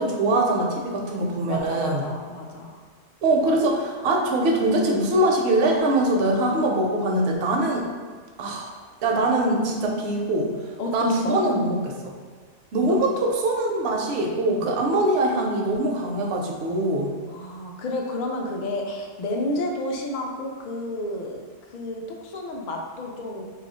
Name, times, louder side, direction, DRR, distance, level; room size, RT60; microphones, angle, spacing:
voice 1, 0.0-2.0 3.2-7.8 8.4-8.7 9.0-10.5 10.9-12.1 12.7-17.1, right 1 dB, 65° right, 0 dB, 0.8 m, -23 dB
voice 2, 1.4-2.8 10.8-11.4 12.8-12.9 14.5-14.7 17.3-23.4, left 1 dB, 65° left, 1 dB, 0.4 m, -31 dB
3.0 x 2.4 x 4.0 m, 1.5 s
omnidirectional pair, 1.3 m